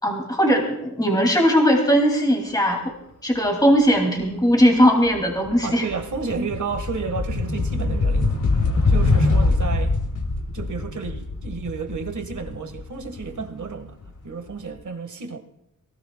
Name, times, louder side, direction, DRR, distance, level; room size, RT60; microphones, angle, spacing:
voice 1, 0.0-2.9 3.2-5.9, equal, 10° left, 1 dB, 2.6 m, -19 dB
sound 1, 4.6-4.8 5.2-14.0, left 3 dB, 65° left, 2.5 m, -23 dB
voice 2, 5.6-8.4 8.9-10.0 10.5-15.4, right 5 dB, 65° right, 7 dB, 1.7 m, -31 dB
22.5 x 19.0 x 2.3 m, 0.80 s
wide cardioid pair, 115°, 32 cm